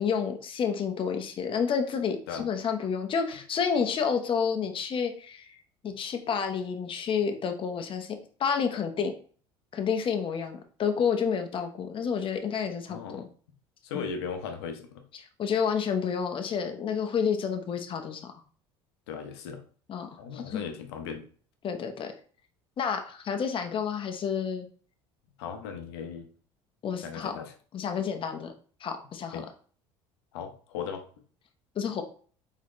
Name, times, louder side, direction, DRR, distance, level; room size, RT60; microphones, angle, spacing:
voice 1, 0.0-5.6 5.8-9.1 9.7-13.3 13.9-14.0 15.4-18.3 19.9-20.6 21.6-22.1 22.8-24.7 26.8-27.4 27.7-28.5 28.8-29.5 31.8-32.0, left 6 dB, 40° left, 6 dB, 0.9 m, -30 dB
voice 2, 12.9-13.3 13.8-15.0 19.1-19.6 20.2-21.3 25.4-26.3 27.0-27.5 29.3-29.5 30.3-31.1, left 6 dB, 85° left, 7 dB, 0.8 m, -37 dB
4.1 x 3.7 x 3.1 m, 0.43 s
supercardioid pair, 80°, 13 cm